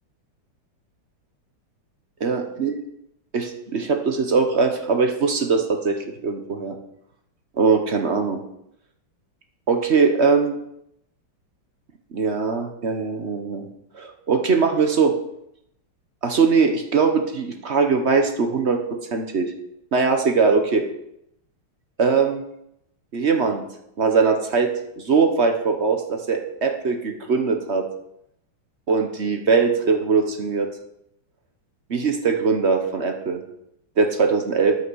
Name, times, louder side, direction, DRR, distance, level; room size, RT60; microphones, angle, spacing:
voice 1, 2.2-2.8 3.3-6.7 7.6-8.4 9.7-10.6 12.1-13.6 13.9-15.1 16.2-19.5 19.9-20.8 22.0-22.4 23.1-23.6 24.0-24.7 25.0-27.8 28.9-30.7 31.9-33.4 34.0-34.8, right 5 dB, 45° right, 5 dB, 1.0 m, -21 dB
12.0 x 5.7 x 6.3 m, 0.79 s
omnidirectional pair, 2.3 m